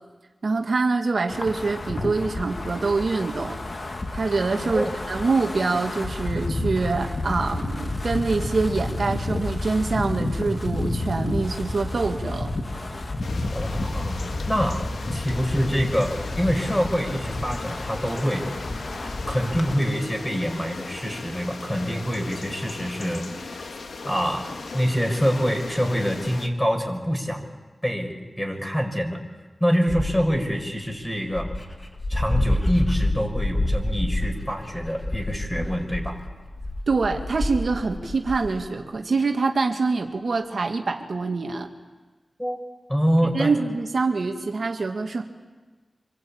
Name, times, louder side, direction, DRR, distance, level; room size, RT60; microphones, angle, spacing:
voice 1, 0.4-3.6 4.1-12.5 36.9-41.7 43.3-45.2, right 3 dB, 70° right, 3 dB, 2.1 m, -25 dB
Wind, 1.3-19.7, left 2 dB, 55° left, 2.7 m, -30 dB
sound 1, 13.2-26.5, left 4 dB, 90° left, 1.8 m, -38 dB
voice 2, 13.5-14.9 15.1-18.5 19.3-23.6 24.0-27.4 27.8-29.2 29.6-31.5 32.1-36.2 42.4-42.6 42.9-43.6, equal, 10° left, 3 dB, 6.1 m, -25 dB
Dog, 29.9-30.4 31.0-31.1 31.3-38.7, left 1 dB, 30° left, 2.8 m, -27 dB
26.5 x 25.5 x 8.8 m, 1.3 s
cardioid pair, 50°, 0 cm